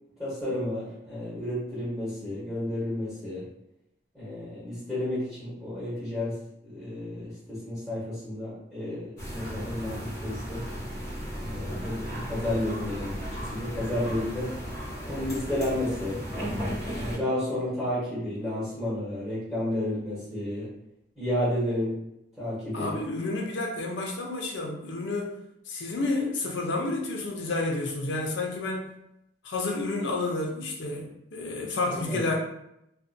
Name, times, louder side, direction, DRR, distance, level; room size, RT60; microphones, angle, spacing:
voice 1, 0.2-3.4 4.1-6.4 6.6-10.7 11.3-14.5 15.1-16.2 16.9-20.7 21.1-22.0 22.4-23.0 31.9-32.2, left 1 dB, ahead, -11 dB, 1.3 m, -31 dB
sound 1, 9.2-17.2, equal, 15° left, 0.9 m, -35 dB
voice 2, 22.7-25.3 25.7-28.9 29.4-32.3, left 2 dB, 75° left, 1 dB, 0.6 m, -30 dB
2.6 x 2.1 x 2.6 m, 0.79 s
head